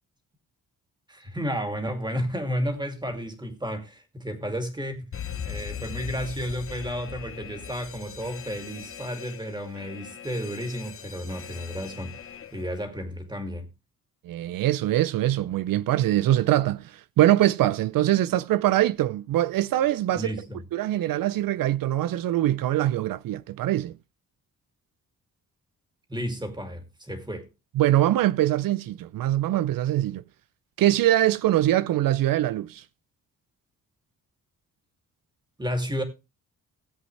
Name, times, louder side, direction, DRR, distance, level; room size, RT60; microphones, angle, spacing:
voice 1, 1.1-5.0 5.4-13.7 20.1-20.6 26.1-27.5 35.6-36.0, equal, 15° right, 2.5 m, -32 dB
Alarm, 5.1-12.8, left 8 dB, 40° left, 1.1 m, -39 dB
voice 2, 14.2-20.3 20.7-23.9 27.8-30.2 30.8-32.8, right 13 dB, 80° right, 0.5 m, -23 dB
16.5 x 8.0 x 3.2 m
cardioid pair, 130°, 33 cm